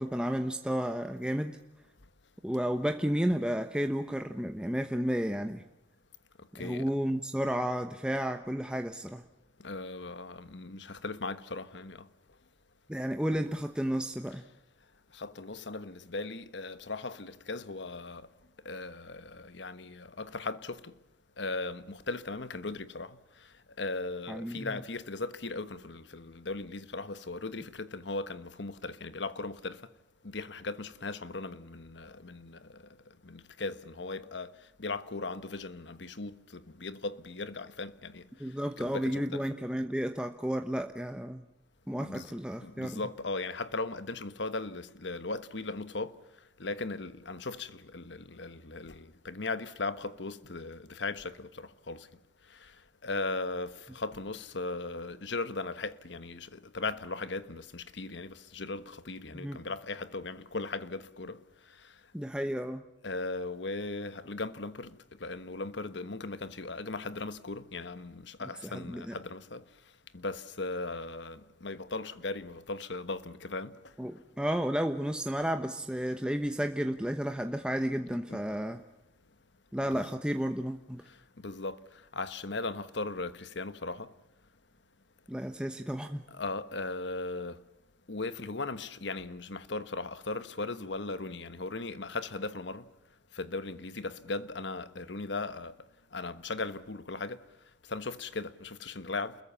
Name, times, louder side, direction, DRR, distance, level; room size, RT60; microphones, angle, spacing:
voice 1, 0.0-1.6 2.4-5.6 6.6-9.2 12.9-14.4 24.3-24.8 38.4-41.4 41.9-43.0 59.3-59.6 62.1-62.8 68.6-69.2 74.0-78.8 79.7-81.0 85.3-86.2, equal, 5° right, 1.0 m, -32 dB
voice 2, 6.5-6.9 9.6-12.0 13.3-13.4 15.1-18.3 18.6-20.9 21.4-23.2 23.8-29.8 30.2-32.8 33.2-34.5 34.8-38.3 38.8-39.4 42.0-42.3 42.6-46.2 46.6-52.1 52.5-52.7 53.0-61.4 61.8-61.9 63.0-69.6 70.1-73.8 78.3-78.4 79.9-80.0 81.1-81.8 82.1-84.1 86.3-87.6 88.1-92.9 93.3-95.8 96.1-97.4 97.9-99.4, left 3 dB, 75° left, 1.3 m, -38 dB
29.0 x 21.5 x 7.0 m
head